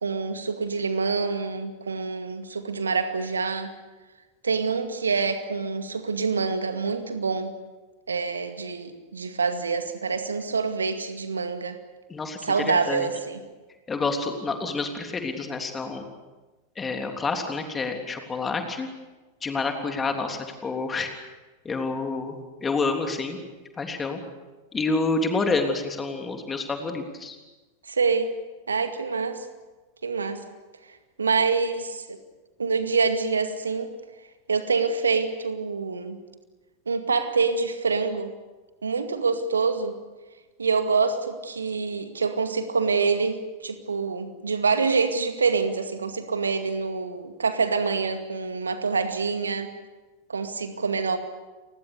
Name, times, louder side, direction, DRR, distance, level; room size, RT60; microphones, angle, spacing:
voice 1, 0.0-3.7 4.4-7.5 8.1-11.8 12.4-13.4 27.8-28.3 28.7-29.5 30.0-30.4 31.2-32.2 32.6-33.9 34.5-36.2 36.9-38.3 38.8-39.9 40.6-49.7 50.3-51.2, right 4 dB, 75° right, 8 dB, 2.2 m, -26 dB
voice 2, 13.9-16.0 16.8-18.9 19.4-21.1 21.6-23.4 23.8-24.2 24.7-27.3, left 3 dB, 15° left, 4 dB, 3.4 m, -28 dB
30.0 x 20.5 x 6.8 m, 1.2 s
figure-of-eight pair, 90°, 0 cm